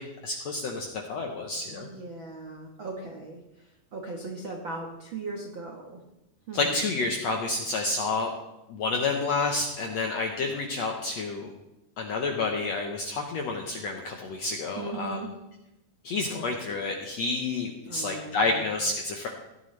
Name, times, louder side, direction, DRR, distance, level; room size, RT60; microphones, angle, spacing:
voice 1, 0.0-1.9 6.5-8.3 8.7-11.5 12.0-15.2 16.0-19.3, left 3 dB, 70° left, 2 dB, 1.7 m, -29 dB
voice 2, 1.7-3.4 3.9-6.0 6.5-6.8 14.7-15.3 17.8-18.6, right 3 dB, 60° right, 0 dB, 1.2 m, -38 dB
17.5 x 12.5 x 3.3 m, 0.95 s
omnidirectional pair, 4.4 m